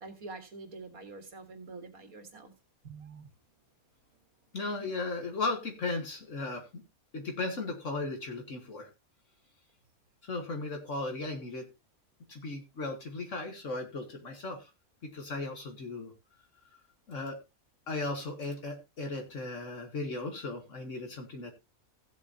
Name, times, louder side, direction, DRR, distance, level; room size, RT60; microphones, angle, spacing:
voice 1, 0.0-2.5 2.8-3.3, right 3 dB, 80° right, 6 dB, 2.2 m, -46 dB
voice 2, 4.5-6.8 7.1-8.9 10.2-11.7 12.3-14.7 15.0-16.1 17.1-17.4 17.9-21.5, left 3 dB, 60° left, 4 dB, 1.8 m, -36 dB
16.0 x 8.2 x 2.7 m, 0.25 s
omnidirectional pair, 1.5 m